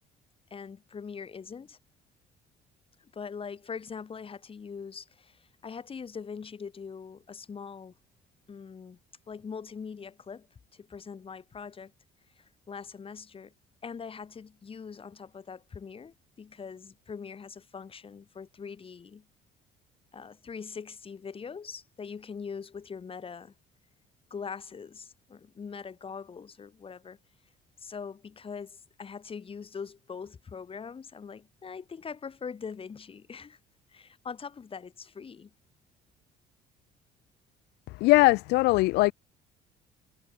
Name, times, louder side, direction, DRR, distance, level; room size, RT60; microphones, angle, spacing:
voice 1, 0.5-1.8 3.0-7.9 8.5-9.0 9.3-11.9 12.4-13.5 13.8-19.2 20.1-23.5 24.3-27.2 27.8-33.6 33.9-35.5, left 6 dB, 35° left, 4.5 m, -42 dB
voice 2, 37.9-39.1, left 21 dB, 85° left, 0.5 m, -21 dB
cardioid pair, 110°, 17 cm